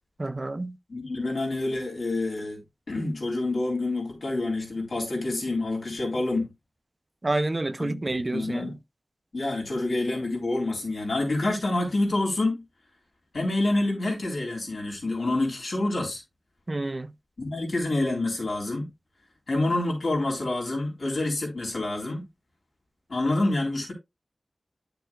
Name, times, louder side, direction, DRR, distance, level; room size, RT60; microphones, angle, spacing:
voice 1, 0.2-0.8 7.2-8.7 16.7-17.1, right 2 dB, 45° right, 0.5 m, -29 dB
voice 2, 0.9-2.6 2.9-6.5 7.8-8.7 9.3-12.6 13.3-16.2 17.4-18.9 19.5-22.3 23.1-23.9, left 2 dB, 80° left, 3.7 m, -27 dB
10.0 x 6.8 x 2.3 m
cardioid pair, 40°, 0 cm